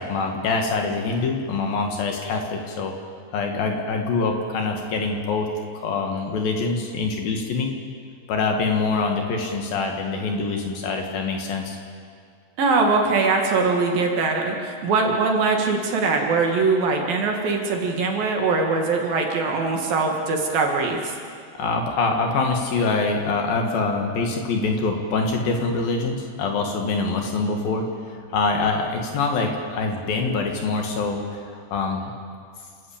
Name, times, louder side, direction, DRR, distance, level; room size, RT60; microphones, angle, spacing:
voice 1, 0.0-2.9 3.3-5.5 5.8-7.7 8.3-11.8 21.6-32.1, left 3 dB, 60° left, 2 dB, 3.2 m, -25 dB
voice 2, 12.6-21.2, right 4 dB, 60° right, 1 dB, 3.5 m, -22 dB
28.5 x 13.5 x 8.7 m, 2.2 s
omnidirectional pair, 5.1 m